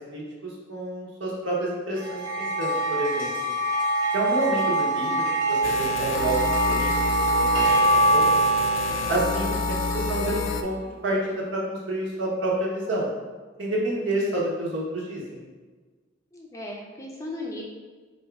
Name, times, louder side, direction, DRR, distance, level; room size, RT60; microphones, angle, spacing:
voice 1, 0.1-3.3 4.1-6.4 6.7-6.9 7.4-7.6 8.1-8.5 9.1-10.8 11.0-13.1 13.6-15.4, right 1 dB, 70° right, -4 dB, 1.2 m, -28 dB
sound 1, 2.0-10.6, right 2 dB, 90° right, 0.8 m, -24 dB
sound 2, 5.6-10.6, left 5 dB, 85° left, 0.4 m, -29 dB
voice 2, 16.3-17.6, left 1 dB, 15° left, -2 dB, 0.5 m, -36 dB
4.2 x 2.7 x 4.7 m, 1.4 s
head